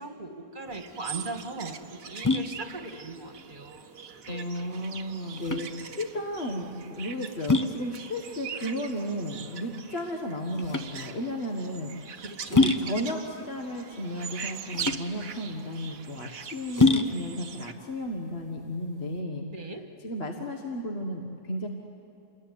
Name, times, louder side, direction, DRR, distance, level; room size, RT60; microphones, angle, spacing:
voice 1, 0.0-3.9 4.3-4.4 12.2-12.7 19.5-19.9, right 2 dB, 30° right, 5 dB, 2.0 m, -39 dB
sound 1, 0.7-19.2, left 3 dB, 20° left, 0.5 m, -29 dB
sound 2, 0.7-17.7, right 7 dB, 65° right, 1.4 m, -42 dB
voice 2, 4.3-11.9 12.5-19.4 20.0-21.7, equal, 40° left, 2 dB, 1.8 m, -34 dB
28.5 x 21.5 x 9.4 m, 2.9 s
omnidirectional pair, 1.6 m